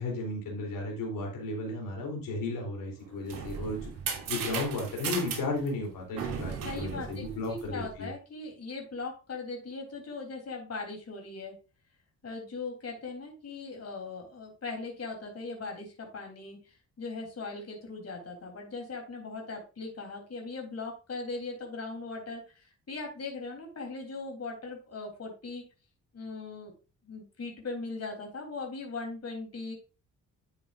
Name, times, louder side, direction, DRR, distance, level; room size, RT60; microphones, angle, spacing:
voice 1, 0.0-3.9 4.3-8.1, left 2 dB, 60° left, -1 dB, 3.7 m, -34 dB
sound 1, 3.0-8.0, right 6 dB, 60° right, 2.8 m, -37 dB
voice 2, 6.6-11.5 12.2-25.6 26.1-26.7 27.0-29.8, left 3 dB, 40° left, 1 dB, 3.7 m, -39 dB
10.5 x 8.1 x 2.6 m, 0.32 s
figure-of-eight pair, 40°, 38 cm